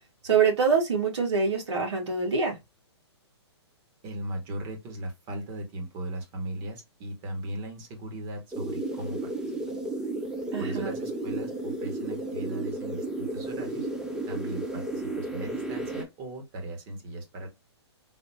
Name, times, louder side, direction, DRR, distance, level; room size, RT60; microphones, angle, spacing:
voice 1, 0.2-2.5 10.5-10.9, right 5 dB, 75° right, 2.4 m, -25 dB
voice 2, 4.0-9.5 10.6-13.9 14.3-17.5, right 1 dB, 30° right, 1.8 m, -38 dB
sound 1, 8.5-16.0, right 2 dB, 5° right, 0.7 m, -33 dB
4.1 x 2.9 x 2.9 m
hypercardioid pair, 140°, 15 cm